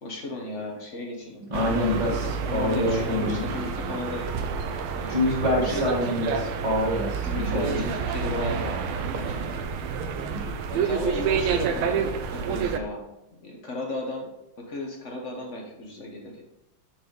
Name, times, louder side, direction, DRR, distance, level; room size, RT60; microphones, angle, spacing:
voice 1, 0.0-1.4 1.7-2.1 2.4-4.2 4.9-5.8 7.2-9.6 10.3-13.0 13.3-14.3 14.6-16.4, left 2 dB, 40° left, 1 dB, 1.2 m, -35 dB
voice 2, 1.5-3.4 5.1-7.8, left 1 dB, 15° right, -6 dB, 1.2 m, -26 dB
sound 1, 1.5-12.8, right 6 dB, 85° right, 1.5 m, -29 dB
7.0 x 5.5 x 3.9 m, 0.86 s
omnidirectional pair, 2.3 m